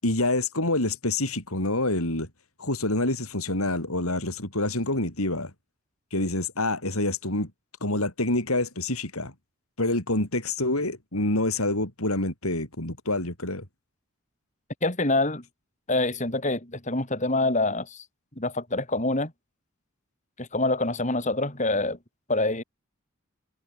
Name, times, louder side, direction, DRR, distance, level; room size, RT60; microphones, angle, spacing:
voice 1, 0.0-2.3 2.6-5.5 6.1-7.5 7.8-9.3 9.8-13.6, left 2 dB, 90° left, 7.5 m, -27 dB
voice 2, 14.8-15.4 15.9-18.0 18.4-19.3 20.4-22.0 22.3-22.6, left 2 dB, 35° left, 4.6 m, -26 dB
head